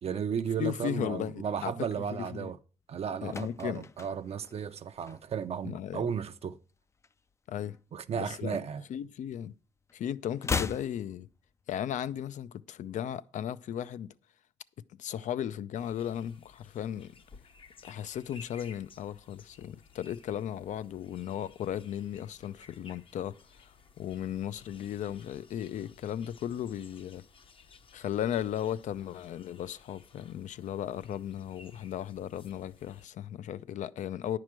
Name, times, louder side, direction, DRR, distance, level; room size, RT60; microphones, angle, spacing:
voice 1, 0.0-2.6 2.9-6.6 7.9-8.8, right 7 dB, 55° right, 0.6 m, -34 dB
voice 2, 0.6-2.5 3.2-3.9 5.6-6.1 7.5-7.8 8.1-8.6 8.9-9.5 9.9-11.3 11.7-14.1 15.0-17.2 17.8-27.3 27.9-34.4, left 10 dB, 75° left, 0.5 m, -36 dB
sound 1, 3.2-5.6 5.9-6.2 6.5-7.9 8.2-9.6 9.8-11.9 12.2-12.3, left 5 dB, 25° left, 0.4 m, -38 dB
sound 2, 15.7-33.1, left 4 dB, 45° left, 0.7 m, -57 dB
10.5 x 4.8 x 7.4 m
cardioid pair, 95°, 13 cm